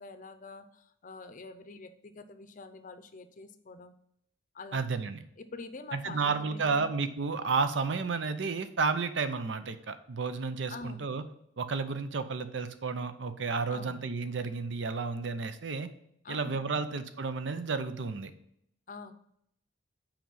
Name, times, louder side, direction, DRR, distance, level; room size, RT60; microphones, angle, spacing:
voice 1, 0.0-3.9 4.5-4.8 5.4-7.0 10.7-11.1 13.7-14.1 16.2-16.9 18.9-19.1, left 3 dB, 40° left, 9 dB, 0.6 m, -46 dB
voice 2, 4.7-5.2 5.9-11.2 11.6-15.9 16.3-18.3, right 4 dB, 65° right, 11 dB, 0.6 m, -32 dB
6.0 x 5.0 x 5.5 m, 0.73 s
head